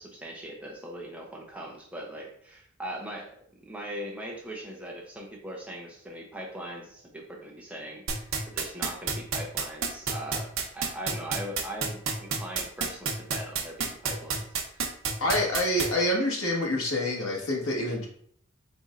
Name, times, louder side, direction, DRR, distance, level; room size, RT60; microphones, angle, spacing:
voice 1, 0.0-14.4 14.7-14.9, right 1 dB, 5° right, -2 dB, 0.7 m, -40 dB
sound 1, 8.1-15.9, right 6 dB, 75° right, 0.8 m, -28 dB
voice 2, 15.2-18.1, left 1 dB, 80° left, -2 dB, 1.4 m, -27 dB
4.3 x 4.2 x 2.4 m, 0.62 s
head